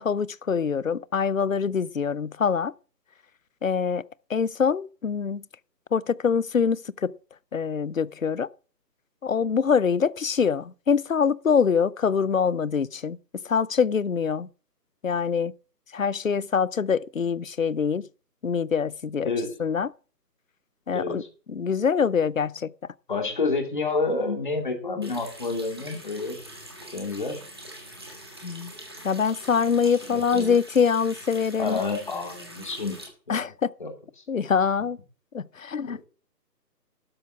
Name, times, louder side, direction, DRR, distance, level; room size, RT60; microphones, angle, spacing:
voice 1, 0.0-2.7 3.6-4.0 4.3-5.4 5.9-7.1 7.5-8.5 9.2-13.2 13.5-14.5 15.0-15.5 15.9-18.1 18.4-19.3 19.6-19.9 20.9-21.2 21.5-22.7 28.4-28.7 29.0-31.8 33.3-33.7 34.3-35.0 35.3-36.0, left 6 dB, 55° left, 0.5 m, -24 dB
voice 2, 19.2-19.5 20.9-21.3 23.1-26.4 26.9-27.5 30.1-30.5 31.6-33.0 33.3-33.4 33.8-33.9 35.9-36.0, left 3 dB, 30° left, 2.3 m, -29 dB
Water tap faucet, 25.0-33.1, right 1 dB, 15° right, 1.5 m, -44 dB
12.5 x 7.1 x 7.2 m
figure-of-eight pair, 175°, 50 cm